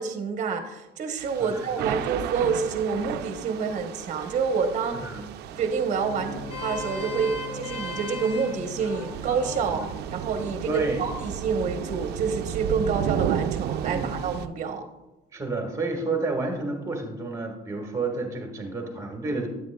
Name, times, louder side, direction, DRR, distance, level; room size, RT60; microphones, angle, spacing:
voice 1, 0.0-5.0 5.6-9.8 10.1-14.8, right 5 dB, 45° right, 6 dB, 0.9 m, -28 dB
Thunder / Rain, 1.2-14.5, right 10 dB, 75° right, 0.4 m, -34 dB
Bowed string instrument, 5.5-9.6, left 1 dB, 20° left, 1.2 m, -42 dB
Vehicle horn car horn honking, 6.3-12.7, left 1 dB, 85° left, 1.4 m, -40 dB
voice 2, 10.7-11.0 13.9-14.1 15.3-19.5, right 3 dB, 20° right, 2 dB, 1.6 m, -30 dB
9.2 x 8.4 x 2.2 m, 0.98 s
cardioid pair, 110°, 17 cm